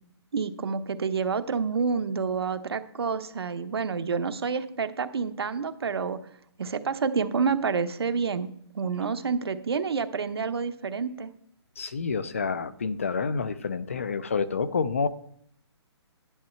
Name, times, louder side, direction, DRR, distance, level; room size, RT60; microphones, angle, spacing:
voice 1, 0.3-6.2 6.6-8.5 8.7-11.3, right 5 dB, 60° right, 9 dB, 0.9 m, -28 dB
voice 2, 11.8-15.1, left 5 dB, 30° left, 14 dB, 0.4 m, -28 dB
10.5 x 8.2 x 4.4 m, 0.67 s
hypercardioid pair, 180°, 14 cm